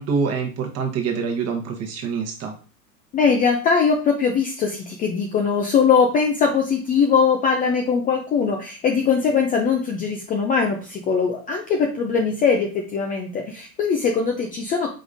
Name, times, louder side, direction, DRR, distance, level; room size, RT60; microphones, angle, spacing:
voice 1, 0.0-2.5, right 5 dB, 30° right, 3 dB, 1.1 m, -25 dB
voice 2, 3.1-14.9, left 5 dB, 20° left, 2 dB, 0.5 m, -21 dB
5.1 x 3.6 x 2.6 m, 0.36 s
hypercardioid pair, 105°, 48 cm